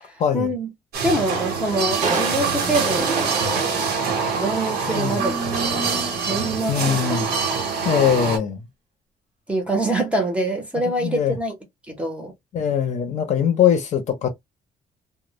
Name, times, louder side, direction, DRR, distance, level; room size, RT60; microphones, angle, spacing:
voice 1, 0.3-0.7 1.0-3.9 4.4-5.3 5.7-7.0 8.1-8.3 9.5-11.5 11.9-12.3, right 1 dB, 10° right, 0.6 m, -25 dB
sound 1, 0.9-8.4, right 5 dB, 85° right, 0.9 m, -25 dB
Crushing, 2.0-5.4 5.8-5.9, right 4 dB, 50° right, 0.6 m, -29 dB
voice 2, 4.9-5.2 6.7-7.3 7.8-8.6 10.8-11.4 12.5-14.3, left 9 dB, 50° left, 0.6 m, -21 dB
2.0 x 2.0 x 2.9 m
cardioid pair, 160°, 15 cm